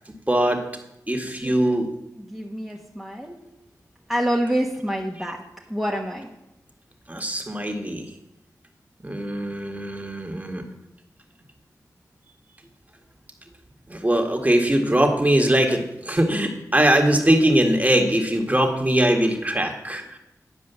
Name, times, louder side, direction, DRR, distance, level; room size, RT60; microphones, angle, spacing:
voice 1, 0.3-0.6 1.1-1.9 7.1-8.1 9.0-10.6 13.9-20.2, right 1 dB, 20° right, 3 dB, 1.8 m, -21 dB
voice 2, 1.4-1.8 2.3-3.4 4.1-5.4 5.7-6.3, equal, 5° right, -1 dB, 1.2 m, -27 dB
9.9 x 5.0 x 6.9 m, 0.87 s
cardioid pair, 45°, 7 cm